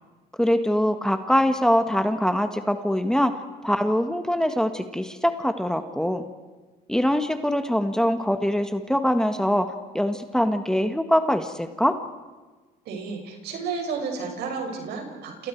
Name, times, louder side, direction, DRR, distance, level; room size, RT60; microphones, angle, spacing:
voice 1, 0.4-3.4 3.6-6.2 6.9-12.0, equal, 5° left, 7 dB, 1.5 m, -23 dB
voice 2, 12.8-15.5, right 5 dB, 75° right, 2 dB, 6.5 m, -32 dB
30.0 x 28.0 x 4.7 m, 1.3 s
cardioid pair, 110°, 17 cm